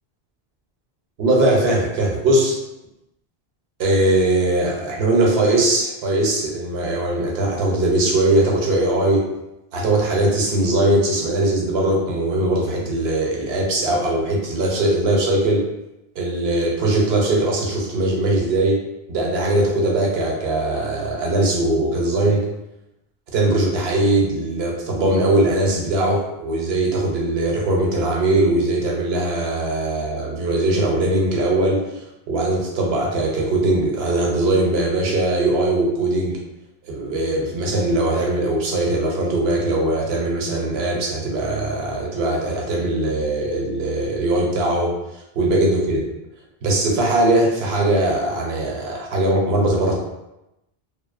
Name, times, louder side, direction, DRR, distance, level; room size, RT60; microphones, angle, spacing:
voice 1, 1.2-2.6 3.8-9.3 9.7-15.6 16.2-18.8 19.1-22.5 23.3-36.4 36.9-46.0 46.6-49.9, right 2 dB, 80° right, -1 dB, 0.8 m, -20 dB
2.6 x 2.1 x 2.3 m, 0.93 s
omnidirectional pair, 1.0 m